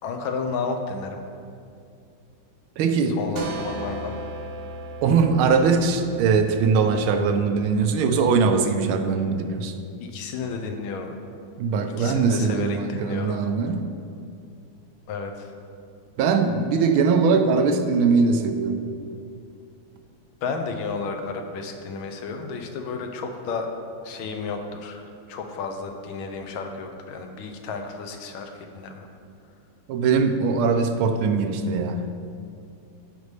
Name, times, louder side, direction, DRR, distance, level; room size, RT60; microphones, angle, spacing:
voice 1, 0.0-1.2 3.1-4.1 10.0-11.1 11.8-13.4 15.1-15.5 20.4-23.7 24.0-25.0 25.3-29.1, left 4 dB, 85° left, 5 dB, 1.6 m, -32 dB
voice 2, 2.8-3.2 5.0-9.7 11.6-13.8 16.2-18.8 29.9-32.1, right 5 dB, 90° right, 7 dB, 1.5 m, -21 dB
sound 1, 3.4-8.8, right 2 dB, 70° right, 0.7 m, -38 dB
14.5 x 5.3 x 3.2 m, 2.4 s
omnidirectional pair, 2.2 m